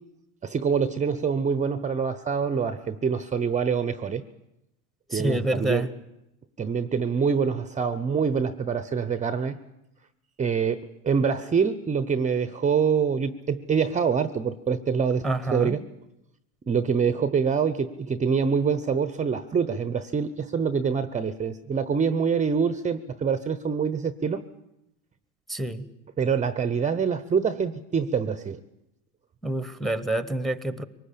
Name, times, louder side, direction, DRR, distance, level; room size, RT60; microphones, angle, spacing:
voice 1, 0.4-4.2 5.1-5.9 6.6-9.6 10.4-15.2 15.5-15.8 16.7-24.4 26.2-28.6, right 6 dB, 20° right, 13 dB, 0.8 m, -25 dB
voice 2, 5.1-5.9 15.2-15.8 25.5-25.8 29.4-30.8, right 1 dB, ahead, 15 dB, 1.1 m, -27 dB
23.5 x 19.5 x 8.6 m, 0.87 s
supercardioid pair, 120°, 38 cm